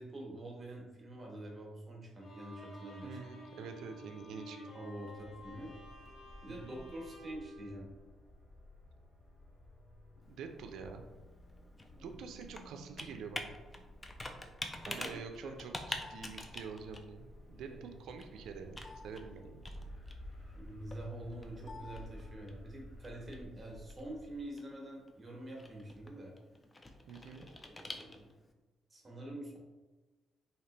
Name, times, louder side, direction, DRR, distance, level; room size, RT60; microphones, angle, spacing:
voice 1, 0.0-3.2 3.7-3.8 4.3-5.7 6.4-7.9 11.9-12.1 14.8-15.7 17.5-17.9 20.5-26.3 27.3-28.3 28.9-29.6, right 1 dB, 30° right, -2 dB, 1.0 m, -46 dB
Bowed string instrument, 2.2-8.5, equal, 65° left, 1.0 m, -53 dB
voice 2, 3.0-4.6 6.5-6.8 10.3-11.1 12.0-13.6 14.9-18.8 19.0-19.6 27.1-27.4, right 5 dB, 80° right, 5 dB, 0.4 m, -46 dB
sound 1, 5.1-24.5, left 1 dB, 45° left, 0.9 m, -54 dB
Computer keyboard, 10.2-28.5, left 2 dB, 20° left, 0.4 m, -48 dB
3.2 x 2.8 x 2.9 m, 1.2 s
cardioid pair, 90°, 0 cm